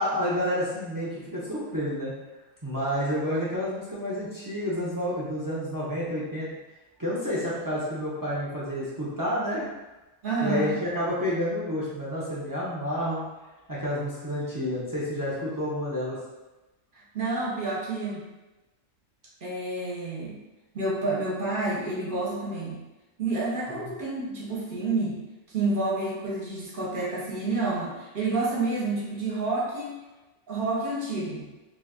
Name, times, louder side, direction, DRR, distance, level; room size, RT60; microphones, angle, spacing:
voice 1, 0.0-2.1 2.6-6.5 7.0-9.6 10.4-13.2 13.7-16.2 23.8-23.9, equal, 30° right, -7 dB, 0.3 m, -29 dB
voice 2, 10.2-10.8 16.9-18.2 19.4-20.4 20.7-22.8 23.2-25.2 25.5-30.0 30.5-31.5, right 3 dB, 50° right, -5 dB, 0.8 m, -29 dB
2.7 x 2.4 x 3.5 m, 1.1 s
omnidirectional pair, 1.3 m